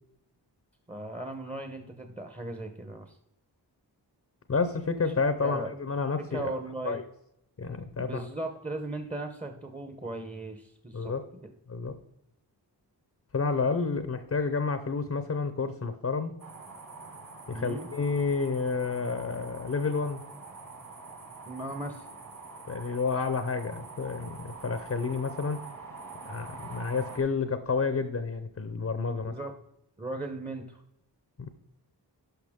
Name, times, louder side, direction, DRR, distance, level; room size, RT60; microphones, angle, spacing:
voice 1, 0.9-3.2 5.4-5.7 6.3-7.0 8.0-11.1 17.5-17.9 21.5-22.0 29.2-29.5 30.0-30.8, right 2 dB, 15° right, 6 dB, 0.9 m, -37 dB
voice 2, 4.5-6.5 6.8-7.0 7.6-8.2 10.9-11.2 11.7-11.9 13.3-16.3 17.5-20.2 22.7-25.6 26.3-29.4 31.4-31.5, left 4 dB, 40° left, 10 dB, 0.7 m, -30 dB
sound 1, 16.4-27.2, right 4 dB, 50° right, 2.2 m, -45 dB
11.5 x 5.8 x 3.6 m, 0.81 s
wide cardioid pair, 75°, 42 cm